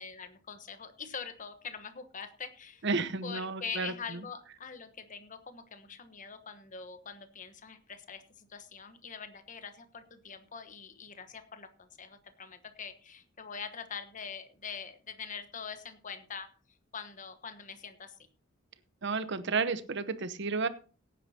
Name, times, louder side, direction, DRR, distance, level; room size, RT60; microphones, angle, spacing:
voice 1, 0.0-2.8 3.2-16.5 16.9-18.2, left 6 dB, 40° left, 9 dB, 1.2 m, -44 dB
voice 2, 2.8-4.2 19.0-20.7, right 4 dB, 65° right, 12 dB, 0.9 m, -32 dB
17.5 x 9.6 x 2.9 m, 0.37 s
head